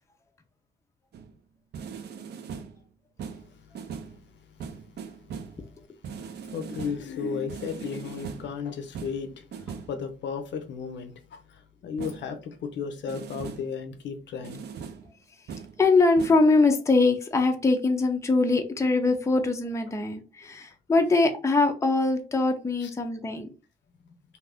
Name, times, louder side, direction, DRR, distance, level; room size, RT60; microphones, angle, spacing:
sound 1, 1.1-1.4 1.7-2.8 3.2-4.2 4.6-5.6 6.0-7.1 7.5-8.6 8.9-10.0 12.0-12.3 13.1-13.8 14.4-15.1 15.5-15.8 16.2-16.5, right 6 dB, 60° right, 0.5 m, -40 dB
voice 1, 6.5-14.6 22.8-22.9, left 6 dB, 65° left, 0.6 m, -35 dB
voice 2, 15.8-23.5, left 3 dB, 15° left, 0.5 m, -22 dB
2.6 x 2.5 x 3.4 m
cardioid pair, 90°, 20 cm